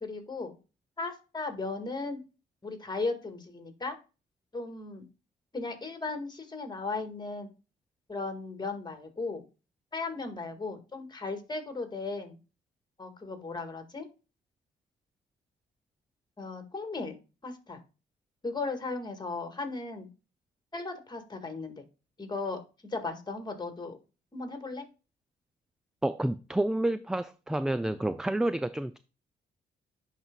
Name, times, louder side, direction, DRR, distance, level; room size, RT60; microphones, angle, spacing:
voice 1, 0.0-0.6 1.0-2.2 2.6-4.0 4.5-5.1 5.5-7.5 8.1-9.4 9.9-12.4 13.0-14.1 16.4-17.2 17.4-17.8 18.4-20.1 20.7-21.8 22.2-22.6 22.9-24.0 24.3-24.9, left 3 dB, 20° left, 1.9 m, -36 dB
voice 2, 26.0-29.0, right 1 dB, 5° right, 0.3 m, -29 dB
10.5 x 4.1 x 2.3 m
cardioid pair, 90°, 20 cm